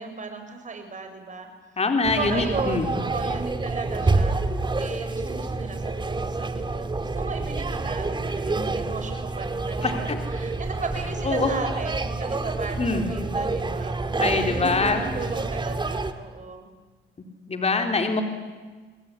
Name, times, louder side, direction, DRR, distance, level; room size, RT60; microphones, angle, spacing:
voice 1, 0.0-1.5 1.8-1.9 2.1-4.4 4.8-14.0 14.5-16.8, right 4 dB, 40° right, 6 dB, 6.9 m, -35 dB
voice 2, 1.8-2.9 9.8-10.2 11.3-11.5 12.8-13.1 14.2-15.0 17.5-18.2, left 3 dB, 30° left, 4 dB, 4.0 m, -24 dB
sound 1, 2.0-16.1, right 3 dB, 25° right, 2.4 m, -28 dB
28.0 x 21.0 x 9.9 m, 1.4 s
cardioid pair, 90°, 20 cm